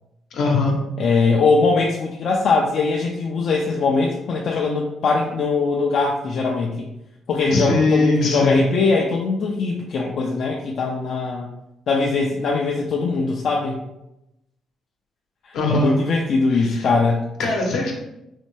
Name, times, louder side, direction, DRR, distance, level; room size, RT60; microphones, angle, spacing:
voice 1, 0.3-0.8 7.5-8.6 15.5-16.0 16.6-16.9 17.4-17.9, left 2 dB, 80° left, 0 dB, 0.9 m, -20 dB
voice 2, 1.0-6.9 7.3-11.5 11.9-13.8 15.5-17.3, left 4 dB, 60° left, -1 dB, 0.4 m, -21 dB
4.1 x 2.2 x 3.1 m, 0.88 s
cardioid pair, 90°, 0 cm